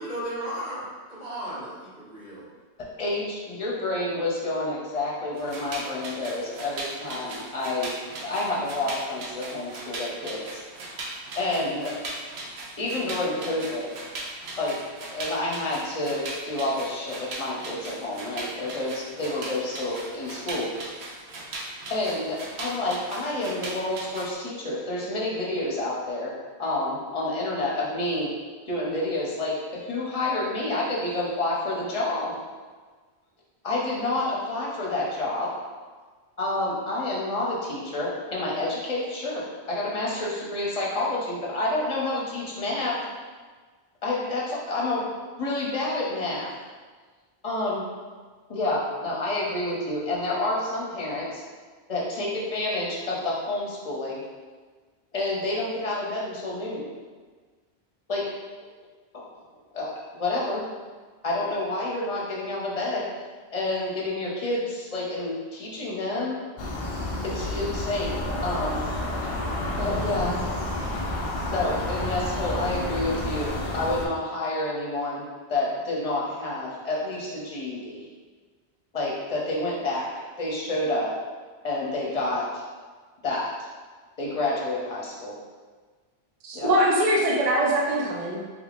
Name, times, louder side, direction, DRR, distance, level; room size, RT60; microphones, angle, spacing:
voice 1, 0.0-2.4, right 1 dB, 70° right, -14 dB, 1.7 m, -35 dB
voice 2, 3.0-10.6 11.3-11.9 12.8-13.9 14.6-14.8 15.1-20.7 21.9-26.3 26.6-28.3 28.7-32.4 33.6-35.5 36.4-43.0 44.0-45.1 45.4-46.5 47.4-47.8 48.5-51.4 51.9-54.2 55.1-56.8 58.1-58.2 59.1-59.3 59.7-59.9 60.2-60.6 61.2-63.0 63.5-66.4 67.2-68.8 69.8-70.4 71.5-75.2 75.5-78.0 78.9-80.1 80.4-81.1 81.6-82.6 83.2-83.7 84.2-85.3 86.5-86.7, left 2 dB, 40° left, -4 dB, 0.7 m, -29 dB
sound 1, 5.4-24.3, right 2 dB, 85° right, 0.9 m, -38 dB
sound 2, 66.6-74.1, left 1 dB, 55° left, 0.4 m, -30 dB
voice 3, 86.4-88.6, right 1 dB, 50° right, -3 dB, 0.5 m, -23 dB
3.4 x 3.3 x 2.4 m, 1.5 s
omnidirectional pair, 1.1 m